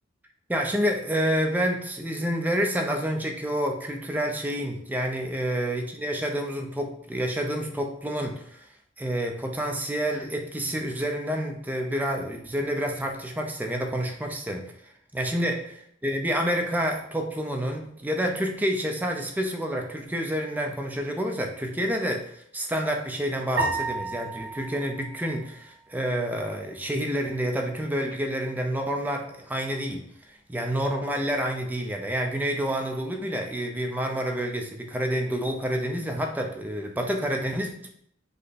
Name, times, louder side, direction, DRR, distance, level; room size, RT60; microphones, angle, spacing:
voice 1, 0.5-8.3 9.0-14.7 15.1-15.6 16.0-30.0 30.5-37.9, equal, 10° right, 2 dB, 0.5 m, -28 dB
sound 1, 23.6-26.0, right 3 dB, 80° right, 1.2 m, -32 dB
5.2 x 2.1 x 4.1 m, 0.69 s
head